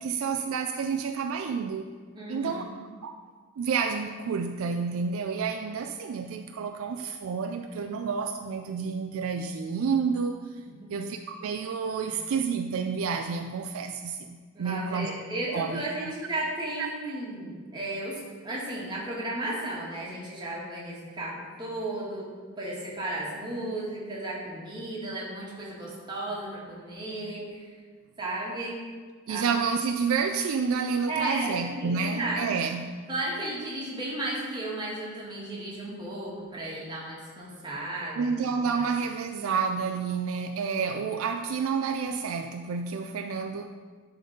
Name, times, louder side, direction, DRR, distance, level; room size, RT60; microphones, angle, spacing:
voice 1, 0.0-1.9 2.3-2.6 3.0-3.1 3.6-10.4 10.9-15.1 15.5-16.1 16.8-16.9 29.3-33.0 38.2-43.7, right 5 dB, 65° right, 6 dB, 0.3 m, -29 dB
voice 2, 2.1-2.7 10.8-10.9 12.0-12.2 14.5-22.3 22.6-27.8 28.2-28.8 29.3-29.4 31.1-32.4 33.1-38.3 38.6-38.8 40.9-41.0, right 1 dB, 20° right, -5 dB, 1.5 m, -34 dB
10.0 x 3.9 x 3.8 m, 1.5 s
head